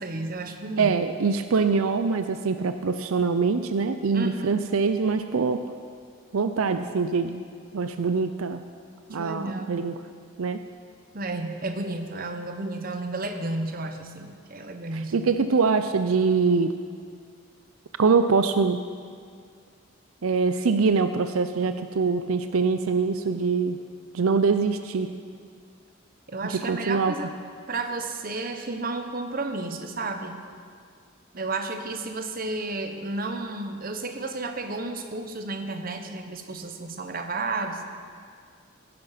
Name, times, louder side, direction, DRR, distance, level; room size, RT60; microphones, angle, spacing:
voice 1, 0.0-1.0 4.1-4.6 9.2-9.8 11.1-15.3 26.3-27.3 27.7-30.4 31.3-37.8, right 2 dB, 40° right, 6 dB, 1.0 m, -32 dB
voice 2, 0.8-5.6 6.3-7.4 7.7-8.6 9.1-9.9 10.4-10.6 14.9-16.7 18.0-18.8 20.2-23.8 24.1-25.1 26.7-27.1, right 4 dB, 80° right, 9 dB, 0.5 m, -24 dB
16.5 x 10.5 x 5.8 m, 2.1 s
head